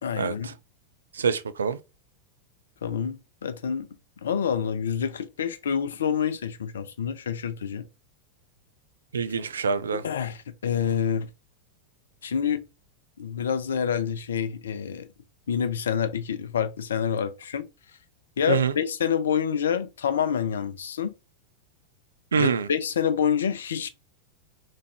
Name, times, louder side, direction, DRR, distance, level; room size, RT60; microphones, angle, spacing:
voice 1, 0.0-0.5 2.8-3.9 4.2-7.9 10.0-11.3 12.2-12.7 13.2-15.1 15.5-17.7 18.4-21.1 22.3-23.9, left 8 dB, 65° left, 0.5 m, -27 dB
voice 2, 1.2-1.8 9.1-10.0 18.5-18.7 22.3-22.7, right 6 dB, 70° right, 0.4 m, -25 dB
3.4 x 3.1 x 3.5 m
figure-of-eight pair, 90°, 0 cm